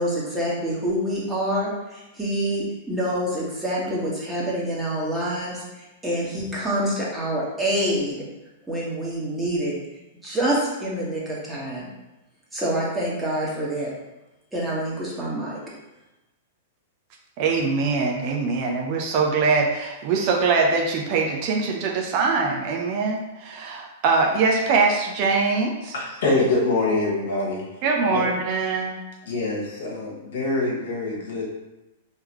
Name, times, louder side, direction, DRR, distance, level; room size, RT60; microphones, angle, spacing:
voice 1, 0.0-5.6 6.0-8.2 8.7-9.7 10.2-11.9 12.5-13.9 14.5-15.6, right 1 dB, 10° right, -5 dB, 1.5 m, -26 dB
voice 2, 17.4-25.9 27.8-29.0, right 4 dB, 45° right, 1 dB, 0.7 m, -23 dB
voice 3, 25.9-27.6 28.1-28.3 29.3-31.4, left 2 dB, 60° left, -2 dB, 1.4 m, -24 dB
4.6 x 3.4 x 3.1 m, 1.0 s
figure-of-eight pair, 100°, 0 cm